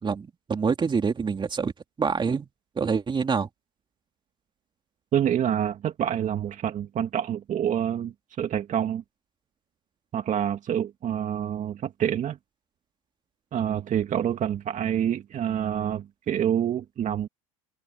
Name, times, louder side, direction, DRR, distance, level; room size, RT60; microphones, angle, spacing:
voice 1, 0.0-1.7 2.0-2.5 2.8-3.5, right 5 dB, 25° right, 3.0 m, -26 dB
voice 2, 5.1-9.0 10.1-12.4 13.5-17.3, right 9 dB, 45° right, 2.3 m, -27 dB
hypercardioid pair, 85°, 18 cm